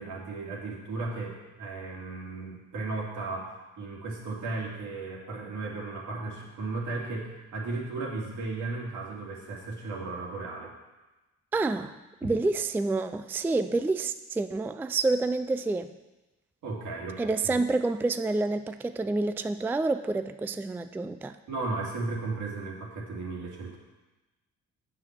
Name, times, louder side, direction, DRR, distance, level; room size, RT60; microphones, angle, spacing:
voice 1, 0.0-10.7 12.2-12.3 16.6-17.6 21.5-23.8, right 3 dB, 75° right, -3 dB, 2.6 m, -35 dB
voice 2, 11.5-16.0 17.2-21.4, right 3 dB, 5° right, 10 dB, 0.3 m, -28 dB
7.5 x 6.0 x 7.4 m, 1.1 s
cardioid pair, 90°, 30 cm